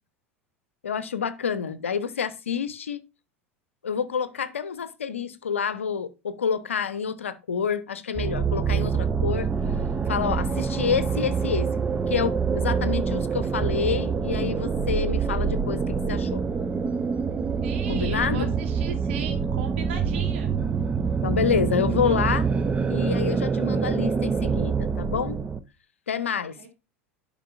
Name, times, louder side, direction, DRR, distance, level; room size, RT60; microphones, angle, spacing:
voice 1, 0.8-3.0 3.8-9.5 10.1-11.7 12.1-16.4 17.9-18.6 21.2-22.4 22.9-25.4 26.1-26.7, left 7 dB, 75° left, 0.6 m, -28 dB
sound 1, 8.2-25.6, right 5 dB, 20° right, 0.5 m, -26 dB
voice 2, 17.6-20.5 22.0-22.3 26.6-26.7, right 6 dB, 65° right, 1.6 m, -38 dB
10.0 x 5.1 x 2.6 m
figure-of-eight pair, 80°, 7 cm